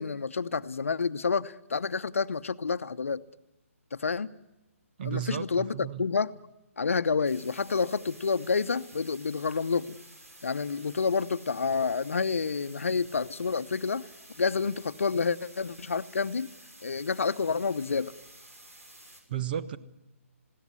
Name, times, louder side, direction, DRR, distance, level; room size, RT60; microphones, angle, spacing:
voice 1, 0.0-3.2 3.9-4.3 5.0-6.3 6.8-10.0 10.4-14.0 14.4-16.5 16.8-18.1, left 5 dB, 65° left, 14 dB, 0.9 m, -29 dB
voice 2, 5.0-6.1 19.3-19.8, right 11 dB, 40° right, 13 dB, 1.3 m, -33 dB
sound 1, 7.2-19.2, right 1 dB, 80° right, 6.2 m, -52 dB
21.5 x 17.0 x 9.8 m, 0.97 s
figure-of-eight pair, 140°, 8 cm